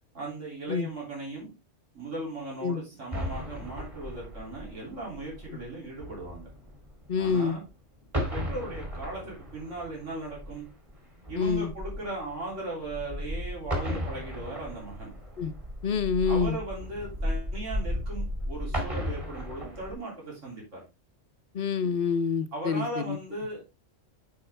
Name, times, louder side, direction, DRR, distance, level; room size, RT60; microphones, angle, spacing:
voice 1, 0.1-1.5 1.9-6.4 7.2-7.6 8.2-10.7 11.3-15.1 16.3-20.8 22.5-23.7, right 2 dB, 80° right, 3.6 m, -38 dB
sound 1, 3.1-7.7 8.0-19.9, equal, 25° right, 2.2 m, -35 dB
voice 2, 7.1-7.6 11.4-11.7 15.4-15.5 15.8-16.6 21.5-23.2, left 5 dB, 55° left, 0.9 m, -27 dB
9.6 x 5.3 x 3.3 m
omnidirectional pair, 1.2 m